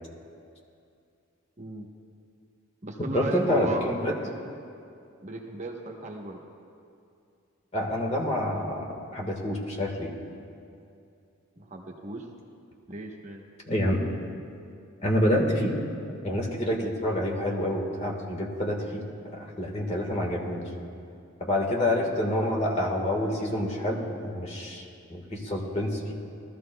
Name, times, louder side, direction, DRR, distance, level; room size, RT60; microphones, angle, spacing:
voice 1, 1.6-1.9 2.8-4.6 5.2-6.4 11.6-12.3 12.9-13.4, right 2 dB, 35° right, 0 dB, 1.0 m, -36 dB
voice 2, 3.1-4.2 7.7-10.1 13.7-14.0 15.0-15.7 16.2-20.6 21.4-26.1, left 1 dB, 30° left, 0 dB, 1.5 m, -27 dB
19.5 x 13.5 x 2.2 m, 2.5 s
head